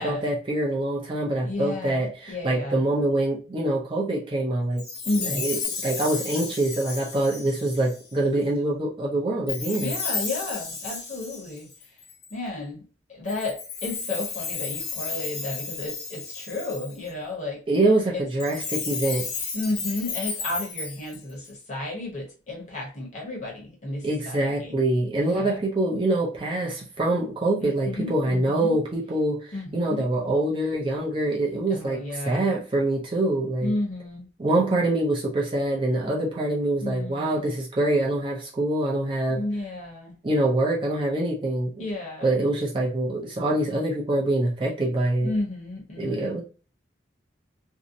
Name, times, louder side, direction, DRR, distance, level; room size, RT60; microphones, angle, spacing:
voice 1, 0.0-4.8 5.2-9.9 17.7-19.3 24.0-33.7 34.4-39.4 40.2-41.8 42.2-45.3 46.0-46.4, right 1 dB, 25° right, -2 dB, 0.5 m, -25 dB
voice 2, 1.4-2.8 5.0-5.5 9.7-11.7 12.3-12.8 13.1-17.6 18.1-18.2 19.5-24.7 25.2-25.6 27.6-28.8 29.5-30.0 31.7-32.4 33.6-34.3 36.8-37.5 39.3-40.1 41.8-42.3 45.2-46.3, left 2 dB, 40° left, -2 dB, 0.9 m, -32 dB
Chime, 4.8-8.1 9.5-12.3 13.3-17.1 18.3-21.5, left 5 dB, 65° left, 0.8 m, -33 dB
2.7 x 2.0 x 2.6 m, 0.36 s
head